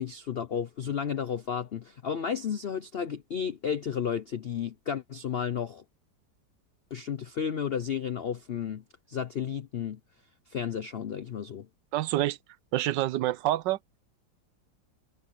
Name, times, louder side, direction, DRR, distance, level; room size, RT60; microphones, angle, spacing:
voice 1, 0.0-5.8 6.9-10.0 10.5-11.7, left 7 dB, 80° left, 0.5 m, -32 dB
voice 2, 11.9-12.4 12.7-13.8, right 14 dB, 80° right, 1.3 m, -27 dB
omnidirectional pair, 2.0 m